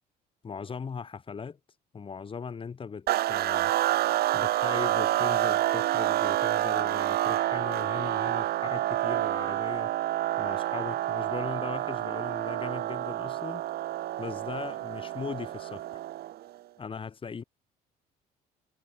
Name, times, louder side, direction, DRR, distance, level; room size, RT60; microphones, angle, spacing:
voice 1, 0.4-1.6 1.9-3.7 4.3-9.9 10.4-13.7 14.2-15.8 16.8-17.4, left 5 dB, 30° left, 3.1 m, -38 dB
sound 1, 3.1-16.5, right 14 dB, 65° right, 1.2 m, -28 dB
cardioid pair, 110°, 17 cm